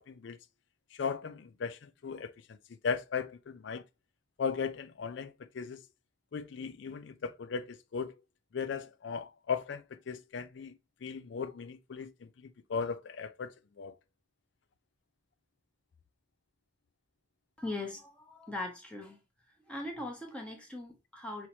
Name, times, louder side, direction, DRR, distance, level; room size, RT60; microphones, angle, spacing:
voice 1, 0.1-0.4 1.0-2.3 2.8-3.8 4.4-5.8 6.3-8.1 8.5-10.7 11.0-12.1 12.7-13.5 13.8-13.9, left 6 dB, 60° left, 0.4 m, -37 dB
voice 2, 17.6-19.2 19.7-21.5, left 2 dB, 5° left, 0.9 m, -40 dB
5.6 x 3.1 x 2.7 m
head